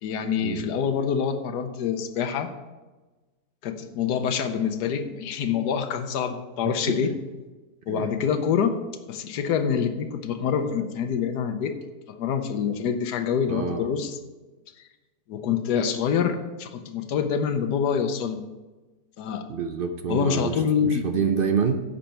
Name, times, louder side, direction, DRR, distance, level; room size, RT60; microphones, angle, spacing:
voice 1, 0.0-2.5 3.6-7.1 7.9-8.8 9.1-11.8 12.1-14.2 15.3-18.4 19.2-19.5 20.1-21.0, left 7 dB, 75° left, 7 dB, 1.4 m, -26 dB
voice 2, 6.6-7.0 7.9-8.1 13.5-13.9 19.5-21.8, right 6 dB, 60° right, 6 dB, 0.5 m, -27 dB
10.5 x 7.5 x 4.4 m, 1.2 s
omnidirectional pair, 1.7 m